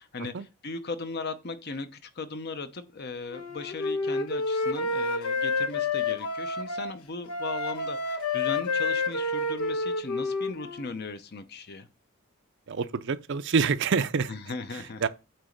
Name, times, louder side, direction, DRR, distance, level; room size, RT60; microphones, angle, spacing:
voice 1, 0.0-0.3 0.6-11.9 14.3-15.0, left 3 dB, 45° left, 0.8 m, -37 dB
Wind instrument woodwind instrument, 3.3-6.9 7.3-10.9, left 3 dB, 85° left, 1.2 m, -29 dB
voice 2, 12.7-14.3 14.7-15.1, right 5 dB, 55° right, 0.5 m, -27 dB
8.8 x 3.0 x 6.5 m
head